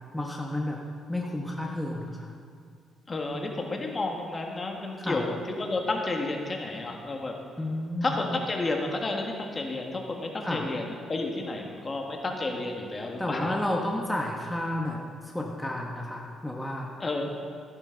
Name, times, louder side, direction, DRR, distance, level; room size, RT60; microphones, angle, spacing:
voice 1, 0.1-0.8 1.1-2.3 5.0-5.2 7.6-8.1 10.4-10.7 13.2-15.0 15.2-16.9, left 1 dB, 5° left, -1 dB, 1.2 m, -31 dB
voice 2, 3.1-7.3 8.0-13.6 17.0-17.2, left 2 dB, 30° left, 1 dB, 1.8 m, -31 dB
15.0 x 10.5 x 4.0 m, 2.2 s
cardioid pair, 90°, 0 cm